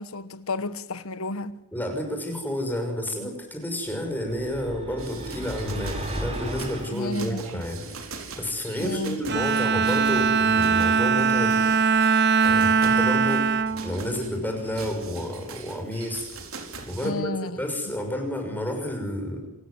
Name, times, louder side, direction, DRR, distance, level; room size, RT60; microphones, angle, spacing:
voice 1, 0.0-1.5 6.9-7.6 8.8-9.2 17.0-17.6, left 2 dB, 65° left, 1.4 m, -31 dB
voice 2, 1.7-8.1 8.4-11.6 12.4-16.3 16.8-19.5, equal, 10° left, 6.1 m, -30 dB
sound 1, 4.1-7.0, right 1 dB, 30° right, 5.7 m, -35 dB
sound 2, 5.0-17.1, right 4 dB, 65° right, 4.5 m, -42 dB
Bowed string instrument, 9.3-14.8, right 5 dB, 50° right, 0.9 m, -22 dB
27.5 x 15.5 x 9.8 m
head